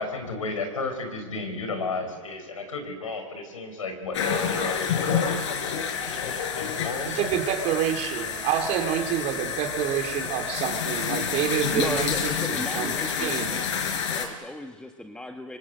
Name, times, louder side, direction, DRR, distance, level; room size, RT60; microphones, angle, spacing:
voice 1, 0.0-7.4, left 3 dB, 80° left, 5 dB, 5.4 m, -34 dB
sound 1, 4.1-14.3, left 7 dB, 65° left, 4.5 m, -29 dB
voice 2, 7.1-12.1 12.5-12.9 13.2-13.6, right 10 dB, 40° right, 5 dB, 3.6 m, -27 dB
voice 3, 11.7-13.8 14.1-15.6, left 1 dB, 5° left, 4 dB, 1.6 m, -36 dB
27.0 x 24.5 x 7.9 m, 1.5 s
hypercardioid pair, 100°, 17 cm